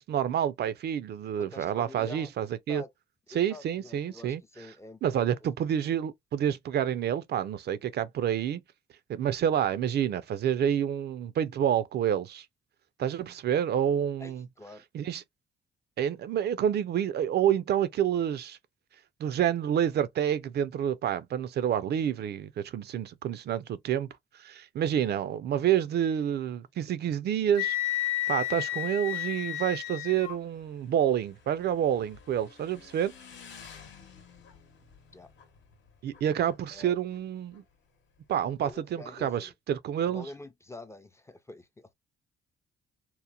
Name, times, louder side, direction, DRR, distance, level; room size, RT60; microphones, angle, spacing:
voice 1, 0.0-2.8 3.3-4.4 5.0-8.6 9.1-12.5 13.0-14.4 14.9-15.2 16.0-18.6 19.2-24.1 24.4-27.8 28.3-33.1 36.0-37.6 38.3-40.3, right 9 dB, 55° right, 0.4 m, -28 dB
voice 2, 1.4-2.9 3.3-5.2 14.2-14.8 35.1-35.3 36.7-36.9 38.6-39.5 40.0-41.9, left 2 dB, 15° left, 0.4 m, -46 dB
Wind instrument woodwind instrument, 27.6-30.4, left 14 dB, 85° left, 0.5 m, -31 dB
Motorcycle / Engine, 29.5-38.7, left 6 dB, 70° left, 0.9 m, -54 dB
2.9 x 2.0 x 2.3 m
cardioid pair, 90°, 20 cm